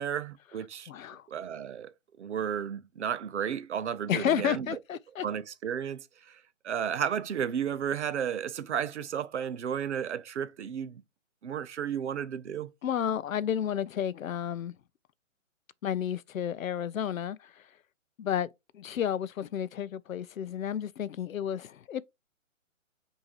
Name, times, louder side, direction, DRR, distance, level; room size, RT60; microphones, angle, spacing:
voice 1, 0.0-0.9 1.3-1.9 2.2-4.8 5.2-11.0 11.4-12.7, right 8 dB, 55° right, 0.7 m, -33 dB
voice 2, 0.9-1.2 4.1-5.2 12.8-14.8 15.8-17.6 18.2-18.5 18.7-22.0, left 9 dB, 80° left, 0.5 m, -31 dB
5.4 x 2.7 x 3.0 m
figure-of-eight pair, 140°, 40 cm